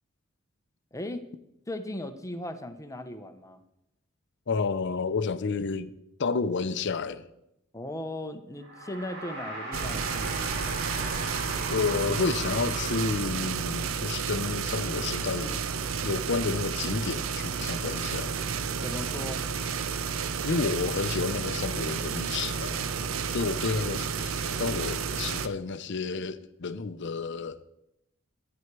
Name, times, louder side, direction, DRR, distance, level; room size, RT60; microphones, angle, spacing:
voice 1, 0.9-1.2 1.7-3.6 7.7-10.6 18.8-19.4, left 1 dB, 15° left, 0.8 m, -37 dB
voice 2, 4.5-5.9 6.2-7.3 11.7-15.7 16.0-18.3 20.4-22.9 23.3-27.7, left 4 dB, 60° left, 0.6 m, -30 dB
sound 1, 8.6-13.7, right 2 dB, 55° right, 3.7 m, -38 dB
sound 2, 9.7-25.5, right 6 dB, 75° right, 0.6 m, -31 dB
12.5 x 9.6 x 4.7 m
head